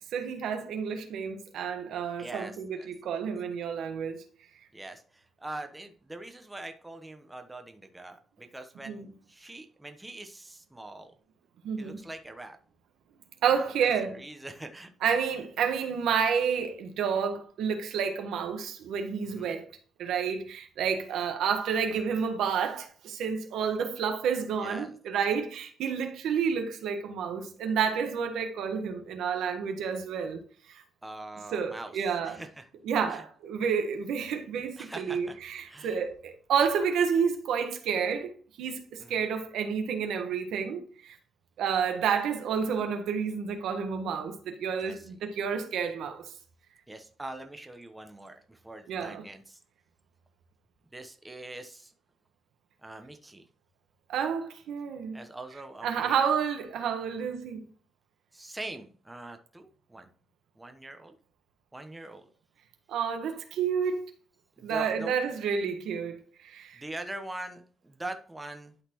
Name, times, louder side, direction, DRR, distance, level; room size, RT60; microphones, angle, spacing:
voice 1, 0.1-4.2 8.9-9.1 11.6-12.0 13.4-14.2 15.0-19.6 20.0-30.4 30.7-30.8 31.5-32.4 32.8-38.3 38.6-41.2 41.6-46.3 48.9-49.2 54.1-55.2 55.8-57.6 62.9-64.0 64.6-66.2 66.4-66.8, right 7 dB, 80° right, 1.3 m, -30 dB
voice 2, 2.2-2.9 4.7-11.1 11.8-12.6 13.6-14.9 19.2-19.6 24.6-25.0 31.0-32.0 32.2-32.6 33.1-33.2 34.8-35.4 35.6-36.0 39.0-39.2 44.8-45.1 46.9-49.6 50.9-51.9 52.8-53.4 55.1-56.2 58.3-60.1 60.6-61.2 61.7-62.3 64.6-65.2 66.7-68.7, right 2 dB, 10° right, 0.9 m, -43 dB
11.5 x 4.1 x 3.0 m
cardioid pair, 90°, 0 cm